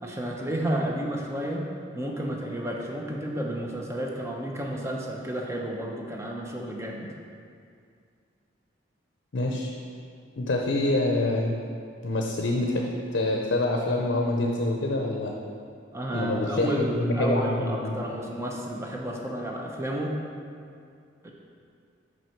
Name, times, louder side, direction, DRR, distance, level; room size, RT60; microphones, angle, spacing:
voice 1, 0.0-1.7 1.9-7.1 15.9-20.2 21.2-21.3, right 1 dB, 15° right, -1 dB, 0.7 m, -31 dB
voice 2, 9.3-9.7 10.4-11.6 12.0-15.3 16.1-18.0, left 2 dB, 65° left, 1 dB, 0.6 m, -26 dB
6.2 x 5.3 x 4.4 m, 2.3 s
head